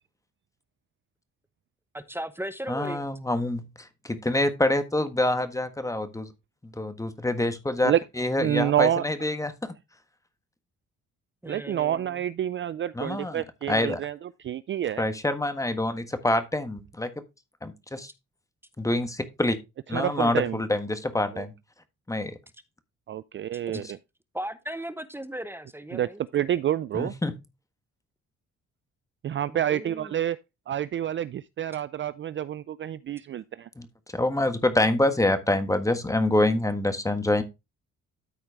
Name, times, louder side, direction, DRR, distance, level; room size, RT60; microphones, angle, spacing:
voice 1, 1.9-3.0 11.4-12.2 23.7-23.8 24.3-26.2 29.5-30.1, right 1 dB, 10° right, 0.9 m, -37 dB
voice 2, 2.7-6.3 6.6-9.7 12.9-14.0 15.0-17.1 17.6-18.1 18.8-19.6 19.9-21.5 22.1-22.4 23.7-23.8 26.9-27.4 33.8-33.9 34.1-37.4, left 1 dB, 10° left, 1.5 m, -26 dB
voice 3, 8.4-9.0 11.5-14.2 14.4-15.0 19.9-20.6 21.3-21.4 23.1-23.8 25.9-27.1 29.2-30.4 30.7-33.7, right 11 dB, 40° right, 0.4 m, -28 dB
13.0 x 4.5 x 3.5 m
cardioid pair, 90°, 30 cm